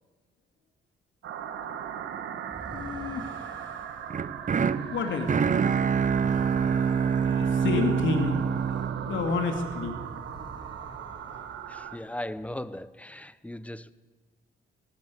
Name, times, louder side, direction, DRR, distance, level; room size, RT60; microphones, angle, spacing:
sound 1, 1.2-12.0, right 8 dB, 80° right, 1.8 m, -38 dB
sound 2, 2.4-9.3 9.7-12.4, right 2 dB, 20° right, 3.2 m, -49 dB
voice 1, 2.7-3.7 4.9-5.7 7.2-8.8 9.0-10.0, left 4 dB, 70° left, 3.0 m, -30 dB
sound 3, 4.1-10.2, right 6 dB, 40° right, 1.0 m, -26 dB
voice 2, 11.7-13.9, left 1 dB, 5° left, 1.1 m, -38 dB
18.5 x 18.0 x 8.3 m
cardioid pair, 85°, 20 cm